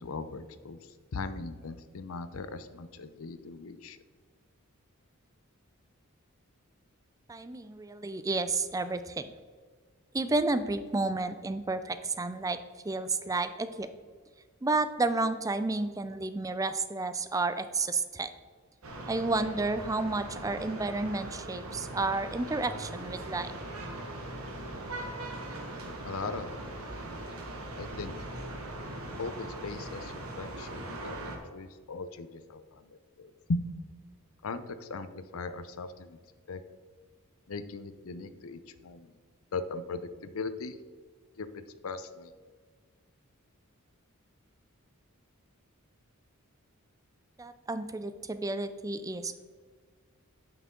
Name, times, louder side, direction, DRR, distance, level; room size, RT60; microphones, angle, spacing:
voice 1, 0.0-4.0 26.0-26.5 27.8-28.1 29.2-32.9 33.2-33.6 34.4-36.2 36.5-36.6 37.5-39.1 39.5-40.8 41.4-41.5 41.8-42.3, left 3 dB, 70° left, 12 dB, 0.6 m, -38 dB
voice 2, 7.3-9.3 10.1-12.6 12.8-13.9 14.6-18.3 19.1-23.5 47.4-49.5, right 3 dB, 15° right, 11 dB, 0.4 m, -31 dB
sound 1, 18.8-31.4, right 1 dB, 75° right, 1.4 m, -40 dB
9.3 x 5.9 x 3.7 m, 1.5 s
head